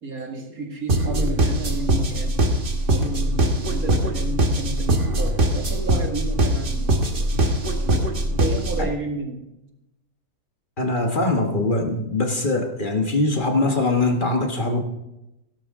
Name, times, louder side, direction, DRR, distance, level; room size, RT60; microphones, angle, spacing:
voice 1, 0.0-2.4 2.9-7.3 8.3-9.4, right 2 dB, 65° right, 2 dB, 2.4 m, -31 dB
sound 1, 0.9-8.9, right 1 dB, 40° right, 1.3 m, -22 dB
voice 2, 10.8-14.8, left 2 dB, 35° left, 3 dB, 1.4 m, -22 dB
17.0 x 11.5 x 3.7 m, 0.91 s
omnidirectional pair, 1.6 m